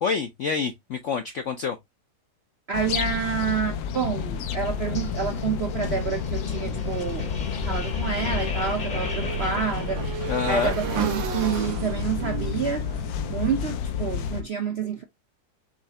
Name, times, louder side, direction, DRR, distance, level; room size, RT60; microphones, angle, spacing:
voice 1, 0.0-1.8 10.3-10.8, left 5 dB, 70° left, 0.7 m, -27 dB
sound 1, 2.7-14.4, left 6 dB, 90° left, 1.4 m, -30 dB
voice 2, 2.7-7.3 7.6-10.0 10.5-12.9 13.3-15.0, right 6 dB, 60° right, 0.6 m, -28 dB
sound 2, 4.9-10.6, left 4 dB, 35° left, 0.8 m, -36 dB
Motorcycle / Engine, 8.0-14.2, right 8 dB, 90° right, 1.7 m, -35 dB
5.7 x 3.2 x 2.7 m
omnidirectional pair, 2.0 m